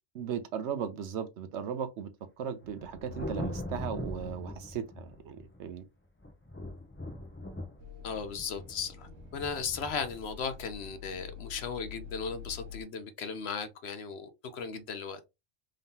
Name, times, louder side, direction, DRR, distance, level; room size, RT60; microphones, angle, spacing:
voice 1, 0.1-2.1 2.4-5.9, right 8 dB, 70° right, 0.9 m, -37 dB
Thunder, 2.6-5.7 6.2-11.5, left 1 dB, 15° left, 0.4 m, -42 dB
sound 1, 7.8-12.8, left 7 dB, 85° right, 1.3 m, -47 dB
voice 2, 8.0-15.2, left 5 dB, 65° left, 0.8 m, -36 dB
3.7 x 3.6 x 2.7 m
omnidirectional pair, 1.3 m